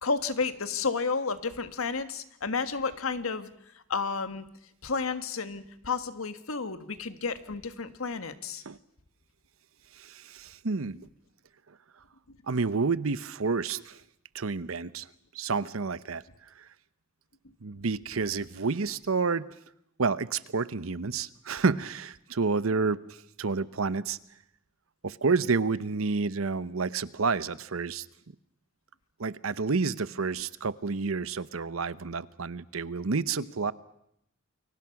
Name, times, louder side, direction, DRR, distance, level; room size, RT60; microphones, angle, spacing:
voice 1, 0.0-3.5 3.9-4.4 4.8-8.6, left 4 dB, 85° left, 10 dB, 1.6 m, -31 dB
voice 2, 10.0-11.0 12.5-14.0 14.3-15.1 15.3-16.2 17.6-19.5 20.0-24.2 25.0-28.0 29.2-33.7, right 4 dB, 80° right, 16 dB, 0.8 m, -29 dB
29.5 x 23.5 x 5.9 m, 0.77 s
head